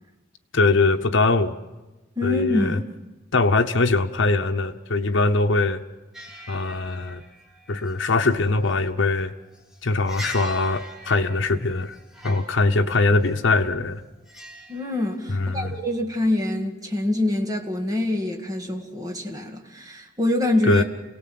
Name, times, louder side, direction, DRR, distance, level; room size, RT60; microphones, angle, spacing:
voice 1, 0.5-1.5 2.2-2.8 3.3-5.8 6.5-7.2 7.7-9.3 9.8-12.0 12.2-14.0 15.3-15.8 20.6-20.8, left 3 dB, 75° left, 4 dB, 0.9 m, -22 dB
voice 2, 2.2-2.9 14.7-20.8, left 2 dB, 20° right, 2 dB, 2.1 m, -25 dB
sound 1, 6.1-15.9, equal, 5° right, 2.3 m, -43 dB
28.5 x 17.5 x 7.7 m, 1.1 s
head